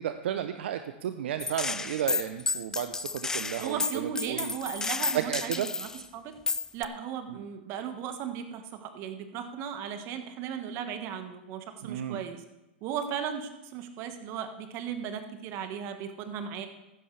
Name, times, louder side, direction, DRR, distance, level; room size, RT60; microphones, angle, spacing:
voice 1, 0.0-4.5 5.1-5.7 7.3-7.4 11.8-12.2, right 10 dB, 70° right, 9 dB, 0.7 m, -33 dB
Gunshot gunfire, 1.4-6.0 6.5-6.8, left 3 dB, 10° left, 0.4 m, -32 dB
voice 2, 3.6-6.3 6.7-12.4 12.8-16.7, right 8 dB, 40° right, 7 dB, 1.5 m, -36 dB
15.0 x 11.5 x 3.3 m, 0.98 s
hypercardioid pair, 120°, 6 cm